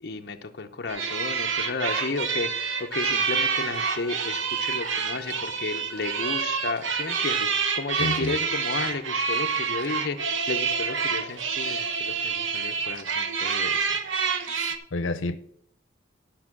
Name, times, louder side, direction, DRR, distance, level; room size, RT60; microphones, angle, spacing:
voice 1, 0.0-13.9, left 3 dB, 55° left, 0.7 m, -33 dB
sound 1, 0.9-14.8, right 6 dB, 80° right, 1.0 m, -27 dB
Alarm, 2.9-3.4 3.9-4.4 4.9-5.4 5.9-6.4 6.9-7.4, equal, ahead, 0.5 m, -43 dB
voice 2, 8.0-8.4 14.5-15.4, left 2 dB, 90° left, 0.7 m, -30 dB
12.0 x 6.0 x 6.0 m
head